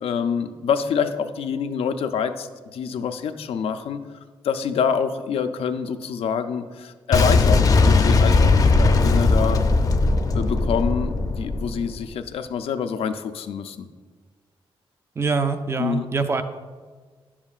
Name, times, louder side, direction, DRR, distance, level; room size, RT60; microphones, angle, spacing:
voice 1, 0.0-4.0 4.4-9.6 10.3-13.9 15.8-16.1, left 6 dB, 90° left, 9 dB, 0.5 m, -26 dB
Boom, 7.1-12.0, left 3 dB, 40° left, 0.5 m, -18 dB
voice 2, 15.2-16.4, right 4 dB, 25° right, 8 dB, 0.4 m, -24 dB
10.5 x 7.2 x 2.4 m, 1.5 s
wide cardioid pair, 150°, 10 cm